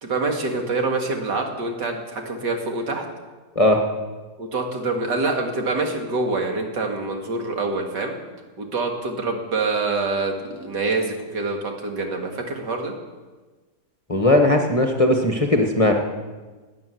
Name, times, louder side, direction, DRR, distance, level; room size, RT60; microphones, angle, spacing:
voice 1, 0.0-3.0 4.4-8.1 8.6-12.9, right 3 dB, 80° right, 2 dB, 2.6 m, -26 dB
voice 2, 14.1-15.9, left 1 dB, 25° left, 3 dB, 1.1 m, -18 dB
12.5 x 9.4 x 9.3 m, 1.3 s
omnidirectional pair, 1.8 m